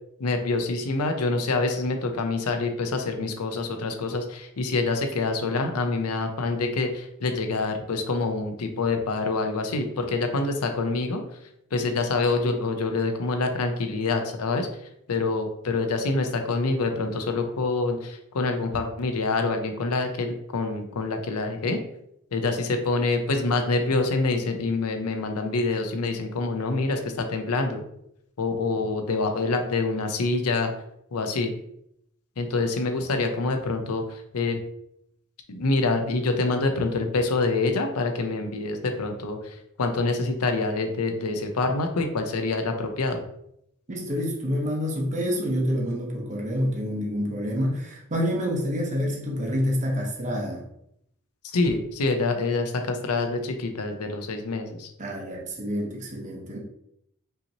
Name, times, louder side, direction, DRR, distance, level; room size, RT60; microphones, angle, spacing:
voice 1, 0.2-11.2 11.7-14.7 15.1-21.8 22.3-27.8 28.4-30.7 31.1-31.5 32.4-34.6 35.5-43.2 51.5-54.9, left 3 dB, 75° left, 5 dB, 0.6 m, -26 dB
voice 2, 43.9-50.6 55.0-56.6, equal, 35° right, -1 dB, 0.9 m, -27 dB
5.5 x 2.9 x 2.8 m, 0.76 s
head